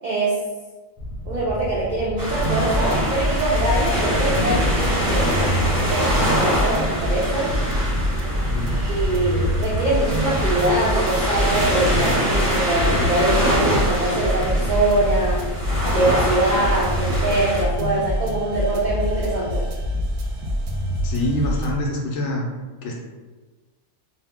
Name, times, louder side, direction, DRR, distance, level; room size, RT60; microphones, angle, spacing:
voice 1, 0.0-0.4 1.3-5.3 5.8-7.5 8.7-15.4 15.9-19.6, right 2 dB, 85° right, -5 dB, 0.4 m, -23 dB
sound 1, 1.0-17.8, equal, 40° left, 0.5 m, -33 dB
sound 2, 2.2-17.6, equal, 20° right, 0.6 m, -24 dB
sound 3, 2.4-21.7, equal, 65° right, 0.8 m, -25 dB
voice 2, 8.4-8.8 21.0-22.5 22.8-22.9, left 1 dB, 65° left, -1 dB, 0.8 m, -25 dB
2.6 x 2.1 x 3.5 m, 1.3 s
omnidirectional pair, 1.4 m